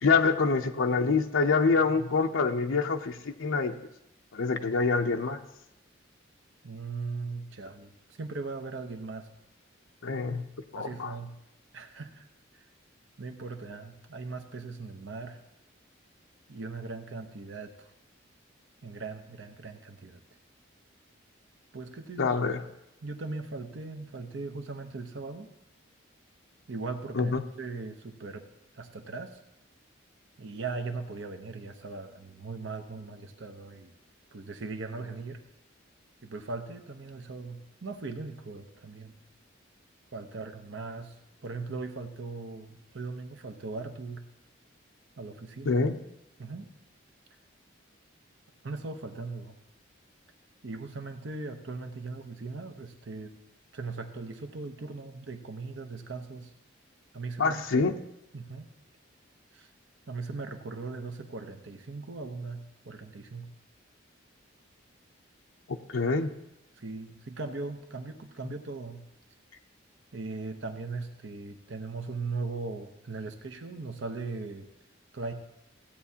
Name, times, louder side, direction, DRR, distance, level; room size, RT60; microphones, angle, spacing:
voice 1, 0.0-3.7 4.3-5.4 10.0-10.4 10.7-11.2 22.2-22.6 27.1-27.4 45.7-46.0 57.4-58.0 65.9-66.3, left 4 dB, 80° left, 5 dB, 0.6 m, -26 dB
voice 2, 6.6-9.3 10.8-11.3 11.7-12.3 12.5-12.6 13.2-15.4 16.5-17.9 18.8-20.2 21.7-22.4 23.0-25.5 26.7-28.5 28.7-29.4 30.4-33.9 34.3-35.4 36.2-39.1 40.1-41.2 41.4-44.2 45.2-45.8 46.4-46.7 48.6-49.6 50.6-53.3 53.7-56.5 57.1-57.9 58.3-58.7 59.5-59.7 60.1-63.5 66.7-69.0 70.1-74.7 75.1-75.3, right 3 dB, 70° right, 6 dB, 0.8 m, -39 dB
16.0 x 8.5 x 2.8 m, 0.89 s
head